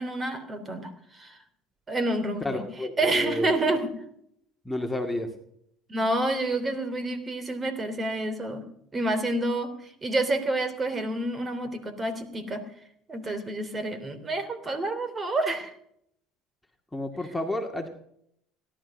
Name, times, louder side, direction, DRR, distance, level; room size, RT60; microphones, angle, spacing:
voice 1, 0.0-1.4 1.9-2.6 3.0-3.9 5.9-8.6 8.9-12.6 13.1-15.7, right 2 dB, 30° right, 10 dB, 3.2 m, -28 dB
voice 2, 2.4-3.5 4.7-5.3 16.9-17.9, left 1 dB, 5° left, 3 dB, 2.1 m, -30 dB
17.5 x 11.5 x 5.4 m, 0.70 s
supercardioid pair, 85°, 0 cm